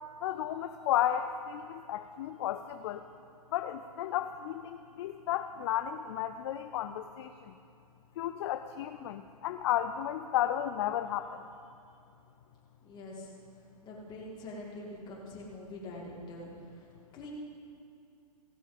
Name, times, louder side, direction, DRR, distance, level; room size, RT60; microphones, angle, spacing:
voice 1, 0.2-3.0 3.5-7.5 8.2-11.3, left 11 dB, 45° left, 9 dB, 0.4 m, -33 dB
voice 2, 12.8-13.3 13.8-17.3, left 1 dB, 20° left, -3 dB, 2.5 m, -45 dB
17.0 x 7.4 x 5.3 m, 2.5 s
hypercardioid pair, 140°, 20 cm